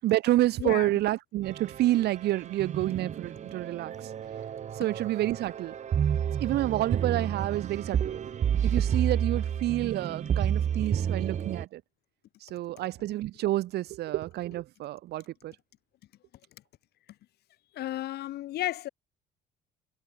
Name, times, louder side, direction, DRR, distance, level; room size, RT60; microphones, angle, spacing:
voice 1, 0.0-4.1 4.7-5.7 6.4-8.2 8.6-11.8 12.4-15.5, right 15 dB, 75° right, 7.2 m, -29 dB
voice 2, 0.6-0.9 17.7-18.9, left 14 dB, 70° left, 7.6 m, -32 dB
sound 1, 1.4-11.7, right 8 dB, 45° right, 1.6 m, -30 dB
cardioid pair, 110°, 17 cm